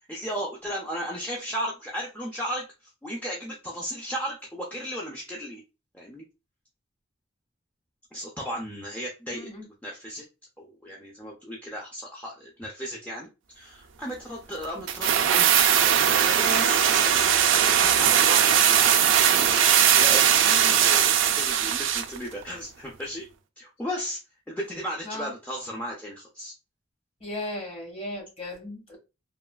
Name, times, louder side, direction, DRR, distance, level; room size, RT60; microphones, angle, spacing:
voice 1, 0.1-5.6 5.9-6.2 8.1-9.5 9.8-10.2 10.6-13.3 13.6-19.6 20.0-23.3 23.6-24.2 24.5-26.5, equal, 10° left, 0.4 m, -35 dB
voice 2, 9.3-9.6 20.4-20.7 25.0-25.3 27.2-29.0, left 1 dB, 30° left, 0.8 m, -36 dB
sound 1, 14.9-22.2 22.4-22.5, right 9 dB, 65° right, 0.3 m, -20 dB
3.1 x 2.2 x 2.2 m
head